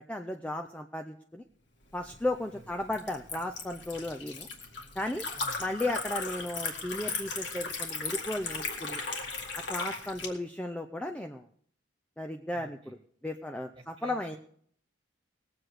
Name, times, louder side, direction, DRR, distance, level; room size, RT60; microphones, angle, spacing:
voice 1, 0.0-1.4 1.9-4.5 5.0-5.3 5.6-9.0 9.6-11.5 12.2-13.0 13.2-14.4, left 1 dB, 5° left, 4 dB, 0.4 m, -35 dB
Liquid, 1.9-10.3, left 4 dB, 60° left, 1.9 m, -37 dB
voice 2, 12.5-12.9 13.8-14.4, right 1 dB, 25° right, 5 dB, 1.8 m, -51 dB
20.0 x 7.8 x 4.8 m, 0.62 s
head